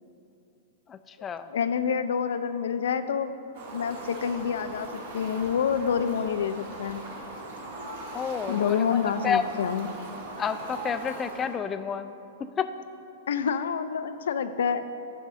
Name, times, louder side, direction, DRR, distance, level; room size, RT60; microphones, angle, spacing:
voice 1, 0.9-1.5 8.1-9.4 10.4-12.1 12.4-12.7, left 7 dB, 20° left, 11 dB, 0.3 m, -30 dB
voice 2, 1.5-3.3 3.7-7.0 8.5-9.9 13.3-14.8, left 7 dB, 85° left, 11 dB, 0.4 m, -27 dB
Fowl, 3.5-11.6, right 2 dB, 70° right, 1.9 m, -39 dB
10.0 x 3.6 x 6.4 m, 2.8 s
hypercardioid pair, 150°, 0 cm